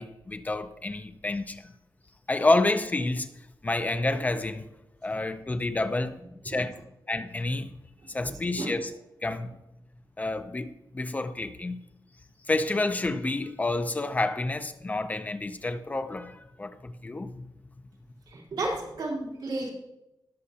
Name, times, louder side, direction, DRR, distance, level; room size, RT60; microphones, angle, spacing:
voice 1, 0.0-1.7 2.3-3.3 3.6-4.7 5.0-6.2 6.4-6.8 7.1-7.7 8.1-8.9 9.2-9.5 10.2-11.8 12.5-17.4, left 2 dB, 20° left, 0.5 m, -29 dB
voice 2, 18.3-19.7, right 2 dB, 70° right, 3.4 m, -32 dB
19.0 x 6.4 x 2.8 m
wide cardioid pair, 170°, 8 cm